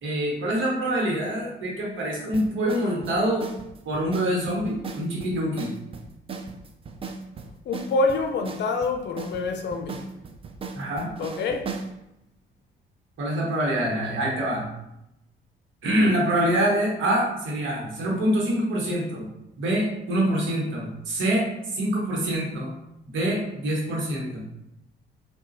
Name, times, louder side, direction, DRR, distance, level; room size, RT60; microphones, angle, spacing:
voice 1, 0.0-3.5 3.8-5.7 10.7-11.1 13.2-14.7 15.8-19.3 19.6-22.7 23.1-24.4, right 1 dB, 75° right, 1.1 m, -25 dB
sound 1, 2.3-11.9, right 4 dB, 30° right, 0.3 m, -37 dB
voice 2, 7.7-10.1 11.2-11.7, left 3 dB, 60° left, 0.5 m, -26 dB
3.9 x 2.3 x 2.5 m
cardioid pair, 90°, 20 cm